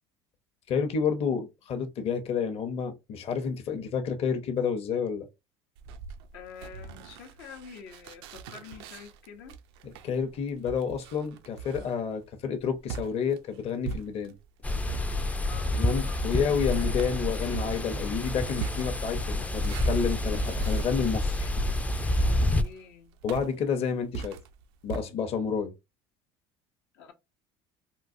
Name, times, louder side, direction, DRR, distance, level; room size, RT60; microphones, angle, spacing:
voice 1, 0.7-5.3 9.8-14.3 15.7-21.5 23.2-24.4 24.8-25.7, left 6 dB, 50° left, 0.8 m, -30 dB
sound 1, 5.8-14.5 14.9-25.0, right 7 dB, 85° right, 0.5 m, -42 dB
voice 2, 6.3-9.6 15.4-16.3 18.8-18.9 22.2-23.2 26.9-27.1, left 7 dB, 80° left, 0.8 m, -47 dB
sound 2, 14.6-22.6, left 1 dB, 10° left, 0.3 m, -28 dB
3.8 x 2.3 x 2.6 m
supercardioid pair, 95°, 13 cm